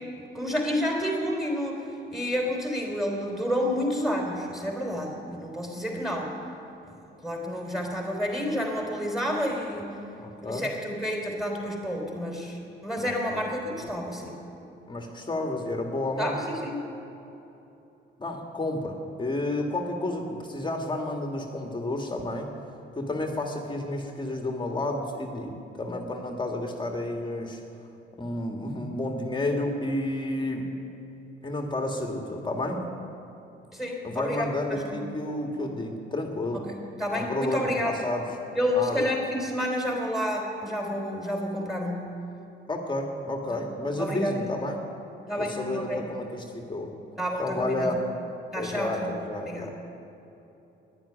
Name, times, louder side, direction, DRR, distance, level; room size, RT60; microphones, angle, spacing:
voice 1, 0.2-6.3 6.9-7.0 7.2-9.9 10.5-14.3 16.2-16.8 33.7-35.0 36.7-38.0 38.6-42.1 43.5-43.6 44.0-44.5 45.3-46.0 47.2-48.0 48.5-49.2 49.5-49.7, equal, ahead, 0 dB, 3.8 m, -30 dB
voice 2, 10.2-10.6 13.0-13.5 14.9-16.4 18.2-22.5 22.9-25.5 25.8-27.6 28.2-30.7 31.4-32.8 34.0-36.6 37.1-38.2 38.8-39.1 42.7-44.8 45.4-46.9 47.4-48.2 48.6-49.7, left 1 dB, 25° left, 2 dB, 1.8 m, -31 dB
10.5 x 10.5 x 10.0 m, 3.0 s
cardioid pair, 90°, 20 cm